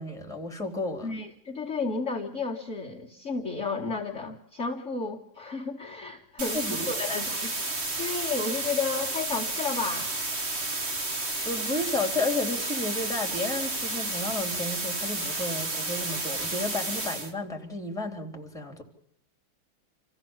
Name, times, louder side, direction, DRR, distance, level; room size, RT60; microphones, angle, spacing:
voice 1, 0.0-1.1 6.5-7.2 11.4-18.8, left 2 dB, ahead, 1 dB, 3.4 m, -32 dB
voice 2, 1.0-7.5 8.0-10.1, left 4 dB, 35° left, -4 dB, 2.1 m, -32 dB
sound 1, 6.4-17.3, right 2 dB, 30° right, 2.0 m, -31 dB
28.0 x 15.5 x 7.3 m, 0.70 s
omnidirectional pair, 2.3 m